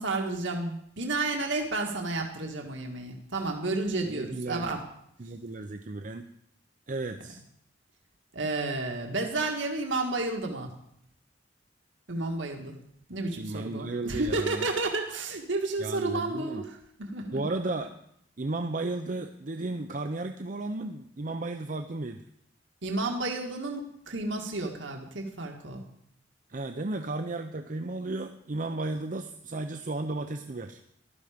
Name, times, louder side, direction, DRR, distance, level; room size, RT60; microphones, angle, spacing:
voice 1, 0.0-4.8 8.3-10.7 12.1-12.8 13.1-16.7 17.0-17.4 22.8-25.8, right 2 dB, 80° right, 2 dB, 1.9 m, -31 dB
voice 2, 4.1-4.7 5.2-6.3 6.9-7.4 13.4-14.7 15.8-16.6 17.3-17.9 18.4-22.2 26.5-30.8, right 2 dB, 45° right, 6 dB, 0.7 m, -34 dB
15.0 x 12.0 x 5.1 m, 0.73 s
head